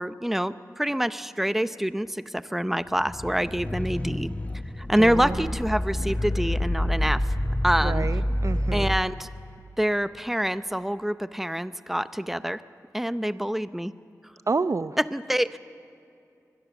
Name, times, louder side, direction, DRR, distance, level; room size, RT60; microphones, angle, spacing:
voice 1, 0.0-4.3 4.8-7.2 7.6-8.1 8.7-9.3 9.8-12.6 12.9-13.9 15.0-15.6, equal, 5° right, 13 dB, 0.7 m, -26 dB
sound 1, 3.0-9.1, left 1 dB, 20° left, 1.1 m, -28 dB
voice 2, 5.0-5.5 7.8-9.0 14.5-15.0, right 4 dB, 50° right, 14 dB, 0.5 m, -29 dB
sound 2, 5.9-8.8 9.2-9.3, left 3 dB, 75° left, 1.1 m, -36 dB
23.5 x 21.0 x 7.1 m, 2.6 s
wide cardioid pair, 55°, 7 cm